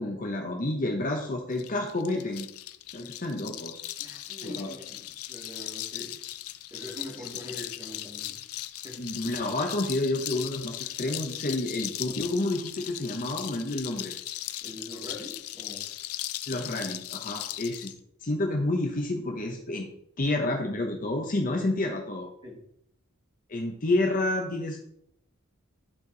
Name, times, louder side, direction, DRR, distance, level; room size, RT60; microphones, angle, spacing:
voice 1, 0.0-2.5 2.9-3.8 4.4-4.7 9.0-14.1 16.5-17.9 18.2-19.9 20.2-22.3 23.5-24.8, left 2 dB, 40° left, 2 dB, 0.8 m, -29 dB
sound 1, 1.5-17.9, left 14 dB, 90° left, 0.5 m, -38 dB
voice 2, 4.0-6.1 6.7-8.4 8.8-9.0 14.6-15.9 22.4-22.6, left 1 dB, 20° right, -3 dB, 2.3 m, -43 dB
11.0 x 4.5 x 3.9 m, 0.73 s
head